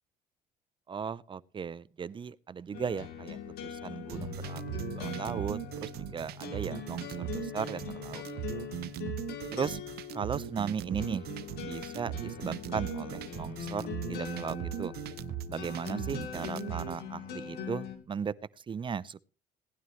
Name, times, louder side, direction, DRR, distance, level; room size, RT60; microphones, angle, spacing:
voice 1, 0.9-8.3 8.5-8.6 9.5-9.8 10.1-11.3 11.6-15.0 15.5-18.3 18.7-19.3, right 6 dB, 30° right, 0.5 m, -37 dB
sound 1, 2.7-18.0, left 7 dB, 70° left, 3.1 m, -41 dB
sound 2, 4.1-17.0, right 12 dB, 70° right, 0.8 m, -39 dB
18.5 x 11.0 x 3.2 m
cardioid pair, 110°, 17 cm